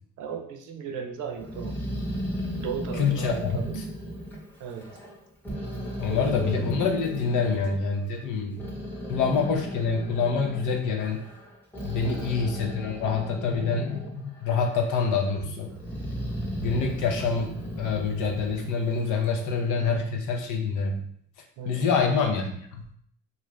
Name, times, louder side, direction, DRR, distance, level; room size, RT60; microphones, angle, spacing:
voice 1, 0.2-1.8 2.6-3.8 4.6-4.9 6.0-6.7 9.0-9.2 11.8-12.4 13.2-13.3 16.6-16.9 21.6-21.9, right 6 dB, 85° right, 5 dB, 0.5 m, -37 dB
Growling, 1.4-5.1 5.4-7.8 8.3-14.2 14.5-15.2 15.7-19.4, equal, 5° left, 0.8 m, -36 dB
voice 2, 3.0-3.6 6.0-8.6 9.1-11.2 11.8-15.7 16.6-17.5 17.8-21.1 21.7-22.8, left 5 dB, 80° left, 3 dB, 0.6 m, -26 dB
2.5 x 2.5 x 3.2 m, 0.65 s
cardioid pair, 90°, 30 cm